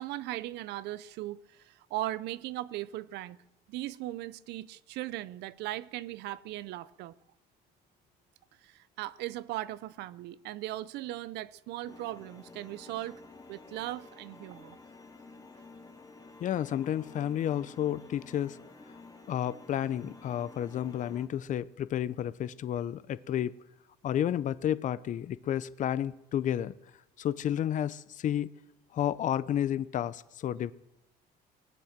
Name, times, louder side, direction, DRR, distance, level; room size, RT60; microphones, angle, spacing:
voice 1, 0.0-3.4 3.7-7.1 8.6-13.2 13.5-14.8, right 15 dB, 85° right, 0.5 m, -38 dB
sound 1, 11.9-21.3, left 3 dB, 20° left, 1.3 m, -51 dB
voice 2, 16.4-18.6 19.3-23.5 24.0-26.7 27.2-28.5 28.9-30.7, left 10 dB, 50° left, 0.6 m, -31 dB
18.5 x 9.3 x 7.3 m
cardioid pair, 110°, 17 cm